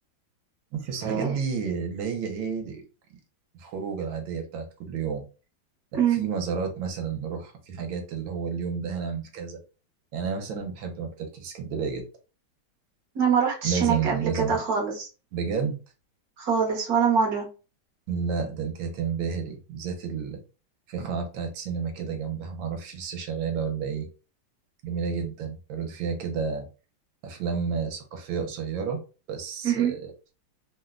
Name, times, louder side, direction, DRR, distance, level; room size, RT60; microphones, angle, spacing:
voice 1, 0.7-2.8 3.6-5.2 5.9-9.6 10.1-12.0 13.6-14.6 15.3-15.8 18.1-20.4 20.9-24.1 24.8-26.7 27.2-29.0 29.3-30.1, right 6 dB, 75° right, 3 dB, 1.4 m, -31 dB
voice 2, 13.1-15.1 16.4-17.5 29.6-29.9, right 7 dB, 55° right, 0 dB, 1.2 m, -24 dB
3.6 x 2.1 x 2.4 m, 0.33 s
omnidirectional pair, 2.3 m